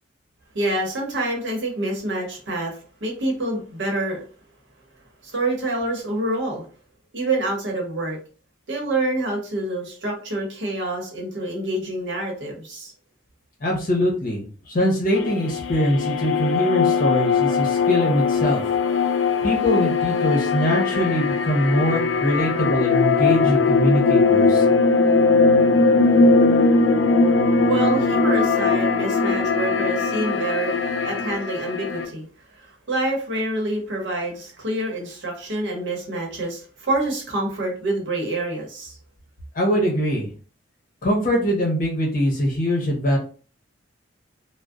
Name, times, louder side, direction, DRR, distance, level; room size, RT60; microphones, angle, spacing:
voice 1, 0.5-4.2 5.3-6.6 7.1-8.2 8.7-12.9 27.7-30.8 31.0-32.3 32.6-39.0, right 2 dB, 70° right, 0 dB, 0.8 m, -27 dB
voice 2, 13.6-18.6 19.4-24.6 39.5-40.3 41.0-43.2, equal, 45° left, 0 dB, 0.8 m, -22 dB
sound 1, 15.1-32.0, left 4 dB, 80° left, 0.4 m, -20 dB
2.6 x 2.0 x 2.3 m, 0.40 s
head